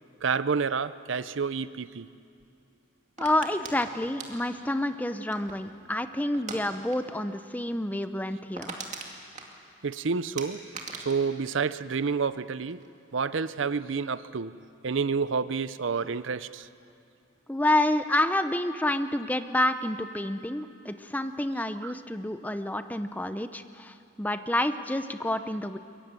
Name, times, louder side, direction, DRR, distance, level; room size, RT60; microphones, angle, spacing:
voice 1, 0.2-2.1 9.8-10.6 11.0-12.8 13.1-14.6 14.8-16.7 21.8-21.9, right 5 dB, 70° right, 15 dB, 0.6 m, -29 dB
voice 2, 3.2-8.8 17.5-25.8, left 1 dB, 10° left, 10 dB, 0.7 m, -28 dB
sound 1, 3.2-5.7 6.3-6.6 6.9-7.2 7.4-7.5 7.9-8.0 8.3-10.0 10.4-12.4 12.7-13.1, right 4 dB, 35° right, 2.4 m, -41 dB
23.0 x 22.5 x 9.0 m, 2.5 s
head